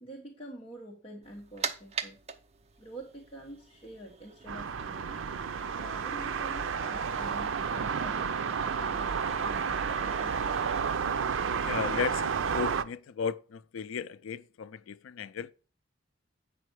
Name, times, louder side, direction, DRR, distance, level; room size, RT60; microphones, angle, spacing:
voice 1, 0.0-2.2 2.8-5.2 5.8-10.8, right 1 dB, 30° left, 1.3 m, -47 dB
sound 1, 1.2-10.9, right 6 dB, 30° right, 0.6 m, -43 dB
sound 2, 4.5-12.8, right 6 dB, 75° right, 0.5 m, -31 dB
voice 2, 11.5-15.5, left 6 dB, 90° left, 0.4 m, -35 dB
8.7 x 5.6 x 4.6 m
head